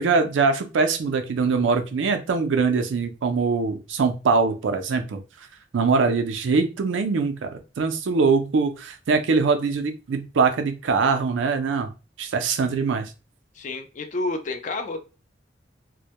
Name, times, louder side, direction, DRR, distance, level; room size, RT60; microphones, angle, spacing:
voice 1, 0.0-5.2 5.7-11.9 12.2-13.1, right 4 dB, 90° right, 7 dB, 0.4 m, -22 dB
voice 2, 13.6-15.0, left 2 dB, 40° left, 7 dB, 0.4 m, -29 dB
2.1 x 2.1 x 2.8 m, 0.31 s
head